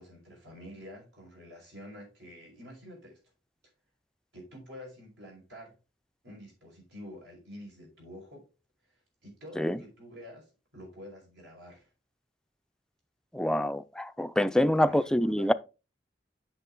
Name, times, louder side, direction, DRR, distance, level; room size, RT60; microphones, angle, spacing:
voice 1, 0.0-3.2 4.3-5.8 6.2-8.5 8.9-11.9 14.6-15.5, equal, 75° right, 5.3 m, -48 dB
voice 2, 13.3-15.5, left 1 dB, 5° left, 0.3 m, -26 dB
8.1 x 6.3 x 3.8 m
head